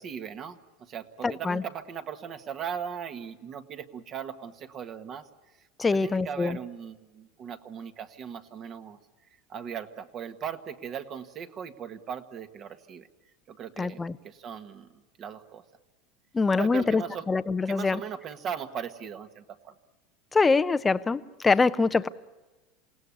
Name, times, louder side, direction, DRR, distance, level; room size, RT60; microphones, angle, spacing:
voice 1, 0.0-5.3 5.9-9.0 9.5-13.1 13.5-14.9 15.2-15.6 16.5-17.3 17.7-19.7, right 8 dB, 35° right, 8 dB, 1.5 m, -38 dB
voice 2, 1.2-1.6 5.8-6.6 13.8-14.1 16.3-17.0 17.3-18.0 20.3-22.1, left 4 dB, 15° left, 14 dB, 0.7 m, -24 dB
28.0 x 18.0 x 8.5 m, 1.2 s
supercardioid pair, 145°, 0 cm